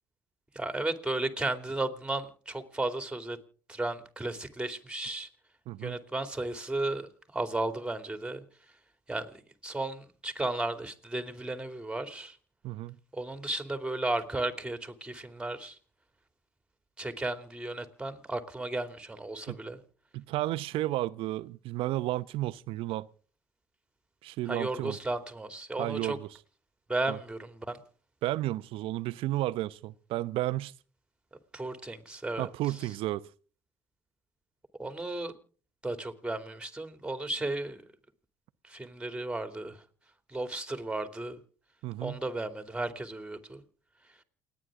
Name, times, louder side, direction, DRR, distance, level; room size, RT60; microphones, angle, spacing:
voice 1, 0.5-3.4 3.7-5.3 5.8-8.4 9.1-9.3 9.6-12.4 13.1-15.8 17.0-19.8 24.5-26.2 26.9-27.8 31.5-32.8 34.8-35.3 35.8-37.8 38.7-39.8 40.3-41.4 42.0-43.6, right 2 dB, 10° right, 2.7 m, -34 dB
voice 2, 5.7-6.0 12.6-13.0 19.5-19.6 20.1-23.1 24.2-25.0 25.8-26.3 27.1-27.2 28.2-30.7 32.4-33.2 41.8-42.2, right 16 dB, 70° right, 0.8 m, -32 dB
29.0 x 9.7 x 3.7 m
hypercardioid pair, 65°, 10 cm